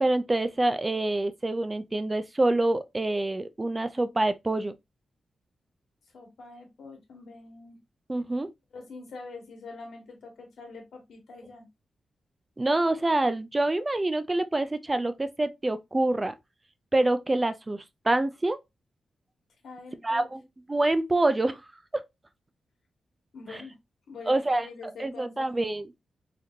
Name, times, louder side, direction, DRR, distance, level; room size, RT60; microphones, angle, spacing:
voice 1, 0.0-4.7 8.1-8.5 12.6-16.3 16.9-18.6 20.0-20.4 20.7-21.6 21.9-22.0 23.5-23.6 24.3-25.9, right 2 dB, 15° right, 0.3 m, -26 dB
voice 2, 6.1-7.8 8.7-11.7 19.6-20.3 23.3-23.7 24.1-25.7, left 3 dB, 80° left, 1.4 m, -45 dB
4.1 x 3.1 x 2.6 m
wide cardioid pair, 160°, 0 cm